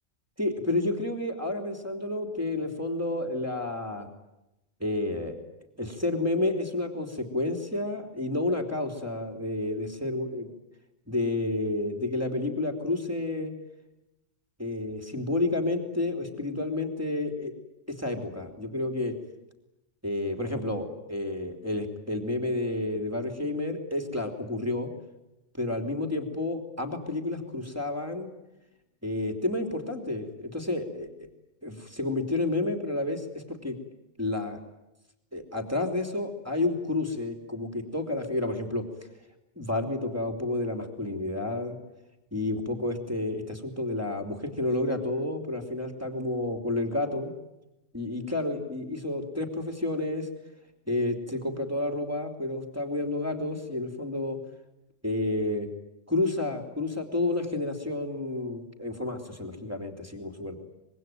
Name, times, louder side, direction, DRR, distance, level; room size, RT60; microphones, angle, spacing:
voice 1, 0.4-4.1 4.8-5.4 5.8-10.5 11.1-13.5 14.6-17.5 17.9-19.2 20.0-24.9 25.5-28.3 29.0-31.1 31.6-33.8 34.2-34.6 35.3-38.8 39.6-41.8 42.3-47.3 47.9-50.3 50.9-54.4 55.0-55.7 56.1-60.6, left 2 dB, 10° right, 6 dB, 3.1 m, -30 dB
25.5 x 22.0 x 9.2 m, 0.93 s
omnidirectional pair, 1.2 m